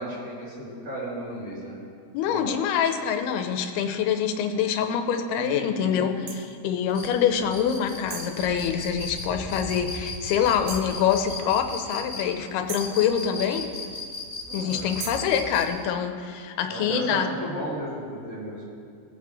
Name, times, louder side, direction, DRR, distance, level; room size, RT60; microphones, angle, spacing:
voice 1, 0.0-1.8 2.2-2.5 5.4-6.0 7.4-7.5 14.5-14.8 16.7-18.6, right 1 dB, 40° right, -8 dB, 4.0 m, -34 dB
voice 2, 2.1-13.6 14.5-17.3, left 8 dB, 90° left, 6 dB, 2.7 m, -25 dB
sound 1, 6.3-6.4 8.1-8.4 10.7-11.0 12.7-13.0 15.0-15.3, right 6 dB, 70° right, 2.4 m, -37 dB
sound 2, 6.9-15.8, left 3 dB, ahead, 2.5 m, -36 dB
21.0 x 8.3 x 3.2 m, 2.2 s
omnidirectional pair, 4.6 m